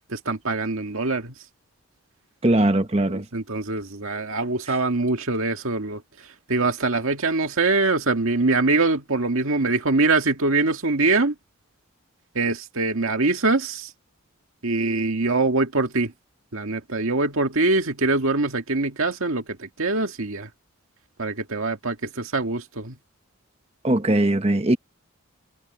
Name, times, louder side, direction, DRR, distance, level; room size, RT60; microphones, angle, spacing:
voice 1, 0.1-1.4 3.1-11.4 12.4-13.9 14.6-16.1 16.5-20.5 21.2-23.0, right 3 dB, 75° right, 1.9 m, -23 dB
voice 2, 2.4-3.3 23.8-24.8, right 1 dB, 30° right, 1.1 m, -20 dB
head